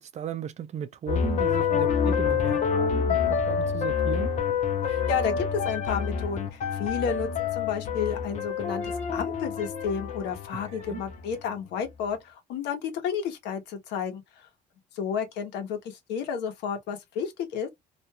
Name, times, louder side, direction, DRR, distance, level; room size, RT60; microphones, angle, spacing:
voice 1, 0.0-4.3 10.6-11.0, right 9 dB, 40° right, 0.5 m, -36 dB
sound 1, 1.1-11.3, left 6 dB, 45° left, 0.7 m, -27 dB
voice 2, 4.9-8.8 9.1-14.5 14.9-17.7, left 7 dB, 85° left, 0.9 m, -31 dB
2.5 x 2.2 x 2.8 m
cardioid pair, 110°, 17 cm